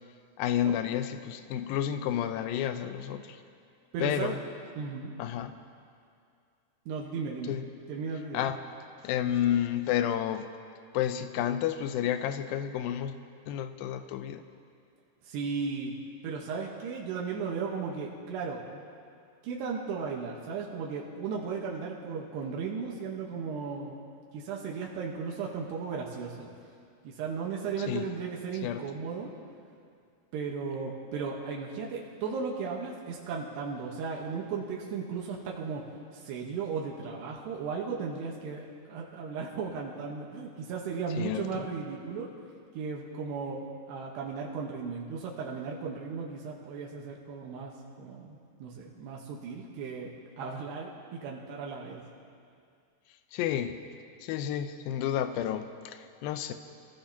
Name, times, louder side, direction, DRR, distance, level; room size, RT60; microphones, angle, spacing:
voice 1, 0.4-3.4 4.0-4.4 5.2-5.6 7.4-7.7 8.3-8.6 9.0-10.5 10.9-13.2 13.5-14.4 27.8-28.1 28.6-28.9 41.2-41.7 53.3-53.8 54.2-56.5, left 10 dB, 80° left, 8 dB, 2.2 m, -31 dB
voice 2, 3.9-4.4 4.8-5.1 6.9-7.5 7.9-8.4 15.3-15.9 16.2-18.6 19.4-24.0 24.3-26.5 27.0-29.3 30.3-35.8 36.1-42.3 42.7-50.1 50.4-52.0, right 5 dB, 85° right, -2 dB, 3.3 m, -36 dB
27.5 x 16.5 x 2.9 m, 2.3 s
omnidirectional pair, 4.8 m